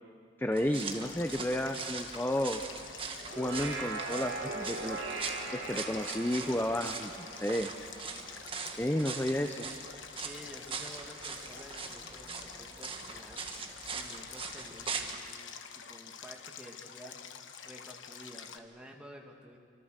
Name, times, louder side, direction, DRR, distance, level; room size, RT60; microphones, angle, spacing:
voice 1, 0.4-2.6 3.4-5.0 5.5-7.7 8.8-9.7, left 1 dB, 10° left, 6 dB, 0.7 m, -32 dB
sound 1, 0.5-15.2, right 5 dB, 25° right, 1.6 m, -42 dB
Stream, 0.7-18.6, left 7 dB, 70° left, 1.2 m, -48 dB
sound 2, 3.2-8.7, right 3 dB, 75° right, 6.4 m, -40 dB
voice 2, 10.2-17.2 17.6-19.6, equal, 5° right, 0 dB, 2.4 m, -52 dB
27.5 x 25.5 x 6.7 m, 2.2 s
head